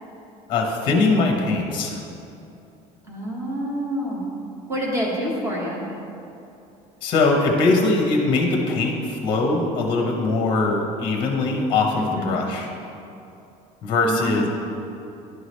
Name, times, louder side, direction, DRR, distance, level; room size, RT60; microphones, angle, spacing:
voice 1, 0.5-2.0 7.0-12.7 13.8-14.5, left 3 dB, 35° left, 2 dB, 0.8 m, -21 dB
voice 2, 3.1-4.3 4.7-5.8 12.0-12.4 14.0-14.5, equal, 20° right, -4 dB, 1.3 m, -27 dB
11.0 x 4.8 x 3.1 m, 2.7 s
cardioid pair, 170°, 14 cm